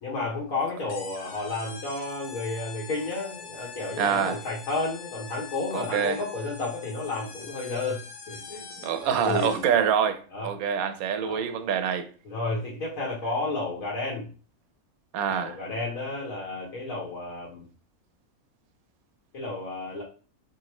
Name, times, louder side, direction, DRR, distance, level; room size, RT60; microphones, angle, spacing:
voice 1, 0.0-9.6 10.3-10.5 11.2-11.4 12.2-14.3 15.3-17.6 19.3-20.0, left 3 dB, 75° left, 1.5 m, -32 dB
sound 1, 0.9-9.8, left 5 dB, 55° left, 0.5 m, -44 dB
voice 2, 4.0-4.4 5.7-6.2 8.8-12.1 15.1-15.6, right 8 dB, 75° right, 1.0 m, -26 dB
3.7 x 3.4 x 3.0 m
omnidirectional pair, 1.5 m